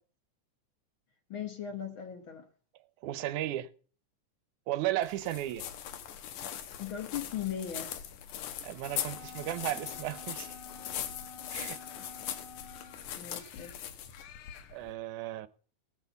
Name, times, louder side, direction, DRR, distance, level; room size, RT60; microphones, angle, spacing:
voice 1, 1.3-2.5 6.8-8.0 12.0-12.1 13.1-13.7, left 9 dB, 60° left, 1.4 m, -38 dB
voice 2, 3.0-3.7 4.7-5.6 8.6-10.5 11.5-11.8 14.7-15.5, right 14 dB, 75° right, 2.1 m, -34 dB
sound 1, 5.0-14.9, left 10 dB, 75° left, 2.6 m, -41 dB
Wind instrument woodwind instrument, 8.8-13.1, left 5 dB, 40° left, 3.8 m, -50 dB
17.5 x 5.9 x 6.9 m
omnidirectional pair, 3.6 m